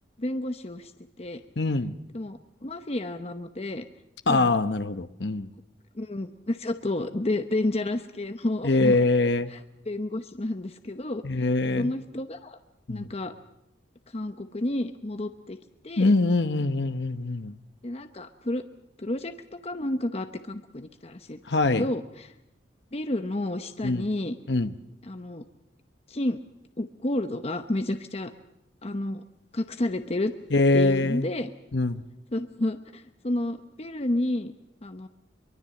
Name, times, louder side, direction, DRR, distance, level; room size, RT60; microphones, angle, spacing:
voice 1, 0.2-0.9 1.2-1.4 2.1-3.8 4.3-4.5 5.9-9.0 9.5-9.6 9.9-11.5 11.8-12.6 12.9-13.3 14.1-15.6 15.8-16.1 17.8-18.6 19.0-21.4 21.7-22.3 22.9-24.4 25.0-25.4 26.1-26.4 26.8-28.3 28.8-29.2 29.5-30.3 30.7-31.5 32.3-34.5 34.8-35.1, left 1 dB, 35° left, 8 dB, 0.8 m, -30 dB
voice 2, 1.6-1.9 4.3-5.5 8.6-9.5 11.2-11.9 12.9-13.1 16.0-17.5 21.5-21.9 23.8-24.1 24.5-24.7 30.5-31.3 31.7-32.0, left 2 dB, 65° left, 10 dB, 0.9 m, -23 dB
23.5 x 23.0 x 7.7 m, 0.85 s
head